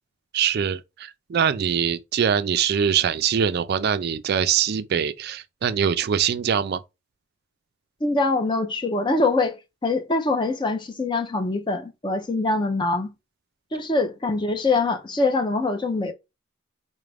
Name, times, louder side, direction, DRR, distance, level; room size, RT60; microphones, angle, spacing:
voice 1, 0.3-6.8, right 8 dB, 50° right, 0.3 m, -23 dB
voice 2, 8.0-13.1 13.7-16.1, left 3 dB, 20° left, 0.5 m, -24 dB
4.1 x 2.4 x 3.3 m
head